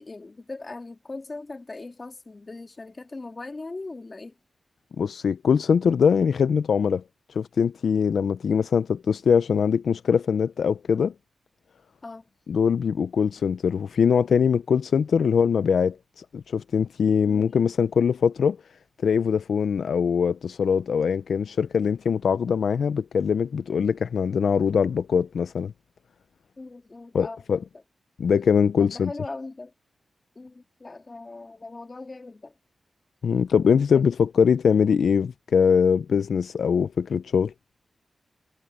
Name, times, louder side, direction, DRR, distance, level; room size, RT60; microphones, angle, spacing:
voice 1, 0.0-4.4 12.0-12.3 17.2-17.6 26.6-27.7 28.8-29.7 30.4-32.5 33.9-34.0, left 3 dB, 35° left, 2.1 m, -39 dB
voice 2, 5.0-7.0 7.4-11.1 12.5-18.6 19.0-25.7 27.1-27.6 28.2-29.1 33.2-37.5, left 6 dB, 85° left, 0.5 m, -22 dB
cardioid pair, 70°, 0 cm